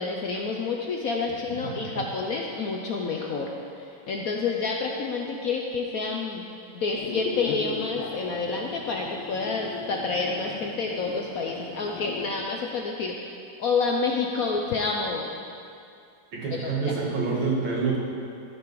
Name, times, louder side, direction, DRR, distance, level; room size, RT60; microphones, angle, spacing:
voice 1, 0.0-3.5 3.8-6.4 6.7-13.3 13.6-15.3 16.6-16.9, left 4 dB, 65° left, 0 dB, 0.9 m, -29 dB
sound 1, 6.9-12.4, left 5 dB, 85° left, 1.6 m, -38 dB
voice 2, 16.3-18.0, right 4 dB, 75° right, -4 dB, 2.5 m, -26 dB
14.5 x 5.4 x 4.7 m, 2.5 s
omnidirectional pair, 2.1 m